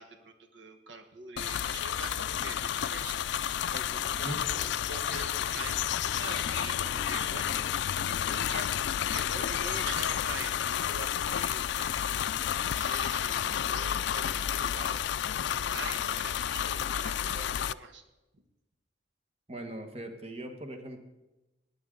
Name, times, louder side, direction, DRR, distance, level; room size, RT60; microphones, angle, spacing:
voice 1, 0.0-3.2 3.7-7.6 7.8-8.7 9.1-12.3 12.6-15.0 15.5-18.0, right 3 dB, 80° right, 7 dB, 1.2 m, -44 dB
sound 1, 1.4-17.7, left 10 dB, 70° left, 0.3 m, -31 dB
sound 2, 3.8-9.8, left 1 dB, 30° left, 0.6 m, -51 dB
voice 2, 19.5-21.0, right 1 dB, 35° right, 6 dB, 1.2 m, -40 dB
18.5 x 9.8 x 3.8 m, 1.0 s
head